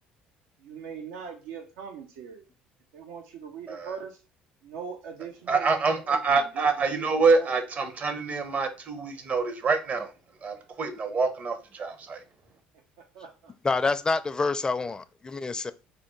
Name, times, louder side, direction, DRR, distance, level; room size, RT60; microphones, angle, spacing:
voice 1, 0.6-2.5 2.9-4.2 4.6-7.0 7.3-7.5 13.0-13.5, right 6 dB, 80° right, 0.6 m, -41 dB
voice 2, 5.5-10.1 10.4-12.2, right 4 dB, 40° right, 0.8 m, -26 dB
voice 3, 13.6-15.7, left 3 dB, 20° left, 0.4 m, -27 dB
3.6 x 2.2 x 4.4 m
supercardioid pair, 75°, 4 cm